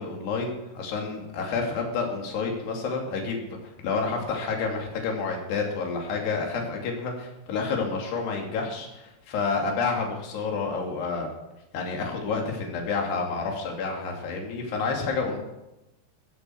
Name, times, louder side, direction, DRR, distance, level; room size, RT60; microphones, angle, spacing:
voice 1, 0.0-11.3 11.7-15.4, left 4 dB, 60° left, 1 dB, 4.6 m, -29 dB
16.0 x 14.5 x 4.7 m, 0.93 s
omnidirectional pair, 5.5 m